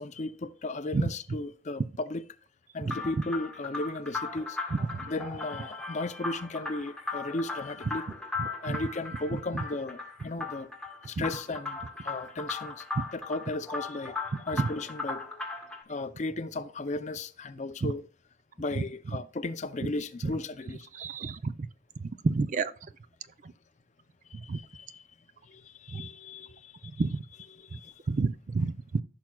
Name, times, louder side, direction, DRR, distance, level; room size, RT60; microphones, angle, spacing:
voice 1, 0.0-2.2 2.7-4.6 5.1-8.1 8.6-10.7 11.1-12.8 13.1-14.2 14.5-15.4 15.9-18.1 18.6-20.9 24.4-25.0 25.4-26.9 27.5-27.9, left 2 dB, 40° left, 0.5 m, -35 dB
sound 1, 2.9-15.8, left 3 dB, 5° left, 1.5 m, -38 dB
voice 2, 21.0-21.5 22.2-22.7 24.5-24.6 25.9-26.1 27.0-27.2 28.1-29.0, right 3 dB, 40° right, 0.4 m, -29 dB
15.0 x 6.0 x 2.3 m
head